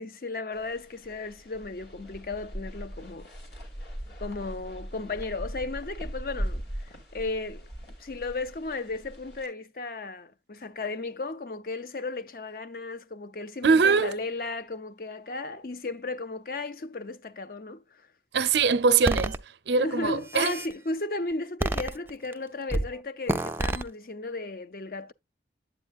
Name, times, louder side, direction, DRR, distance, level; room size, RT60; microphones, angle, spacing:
voice 1, 0.0-3.3 4.2-7.7 8.0-18.0 19.7-25.1, left 3 dB, 50° left, 0.6 m, -35 dB
sound 1, 0.5-9.5, equal, 70° left, 2.3 m, -39 dB
voice 2, 13.6-14.2 18.3-19.4 19.7-20.5, right 5 dB, 80° right, 0.6 m, -22 dB
sound 2, 19.1-19.4 20.1-20.7 21.6-22.3 22.7-22.9 23.3-23.8, right 1 dB, 15° right, 0.3 m, -28 dB
8.7 x 8.1 x 2.3 m
head